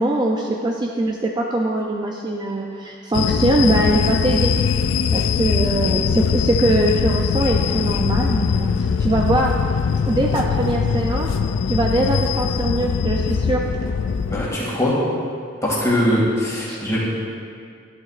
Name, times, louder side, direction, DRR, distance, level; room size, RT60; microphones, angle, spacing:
voice 1, 0.0-4.6 5.1-9.6 10.1-11.3 11.7-13.7 16.7-16.8, right 1 dB, 20° right, 0 dB, 0.4 m, -22 dB
sound 1, 3.1-14.5, left 6 dB, 70° left, 0.3 m, -21 dB
voice 2, 14.3-14.9 15.6-17.1, left 1 dB, 15° left, -6 dB, 2.2 m, -21 dB
11.5 x 10.5 x 2.5 m, 2.3 s
head